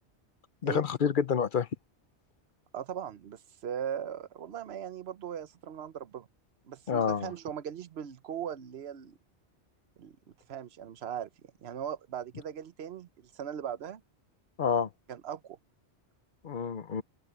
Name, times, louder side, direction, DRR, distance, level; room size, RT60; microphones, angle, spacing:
voice 1, 0.6-1.7 6.9-7.3 14.6-14.9 16.4-17.0, left 7 dB, 50° left, 0.8 m, -28 dB
voice 2, 2.7-6.3 6.7-9.2 10.0-10.2 10.5-11.3 11.6-14.0 15.1-15.6, right 9 dB, 70° right, 1.1 m, -39 dB
open air
omnidirectional pair, 1.2 m